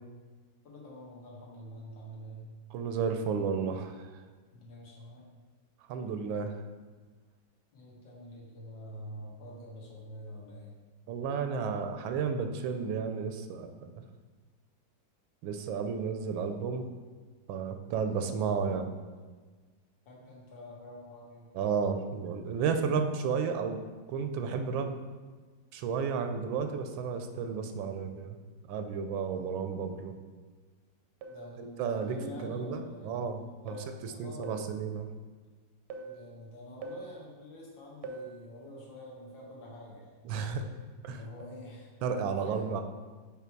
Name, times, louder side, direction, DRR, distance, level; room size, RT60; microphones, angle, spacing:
voice 1, 0.6-2.5 4.5-5.2 7.7-10.8 18.0-18.5 20.1-21.6 29.3-29.7 31.3-33.1 33.6-34.5 36.1-40.2 41.1-41.9 42.4-42.6, left 1 dB, 75° left, -4 dB, 2.0 m, -47 dB
voice 2, 2.7-4.0 5.9-6.6 11.1-13.9 15.4-16.9 17.5-18.9 21.5-23.8 24.1-25.0 25.7-28.4 28.7-30.1 31.6-33.8 34.0-35.1 40.3-40.6 41.0-41.2 42.0-42.8, right 6 dB, 90° right, 6 dB, 1.3 m, -32 dB
sound 1, 31.2-31.5 32.0-32.3 33.7-34.0 34.4-34.7 35.9-36.2 36.8-37.1 38.0-38.4 40.6-40.9 41.4-41.6, right 4 dB, 75° right, 1.1 m, -43 dB
5.9 x 3.5 x 4.5 m, 1.4 s
omnidirectional pair, 2.1 m